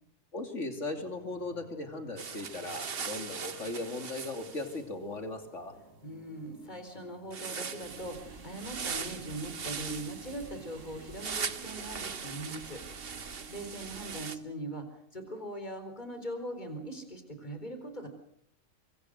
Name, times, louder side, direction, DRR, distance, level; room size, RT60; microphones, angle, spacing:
voice 1, 0.3-5.8, left 2 dB, 65° left, 6 dB, 3.2 m, -38 dB
sound 1, 0.9-11.9, right 2 dB, 90° right, 3.2 m, -57 dB
sound 2, 2.2-4.8 7.3-14.3, right 6 dB, 50° right, 1.3 m, -40 dB
voice 2, 6.0-12.8 13.1-14.9 15.1-18.1, right 1 dB, 35° left, 8 dB, 4.3 m, -41 dB
sound 3, 7.8-14.2, right 4 dB, 70° right, 2.5 m, -50 dB
24.5 x 24.5 x 6.5 m, 0.68 s
omnidirectional pair, 1.3 m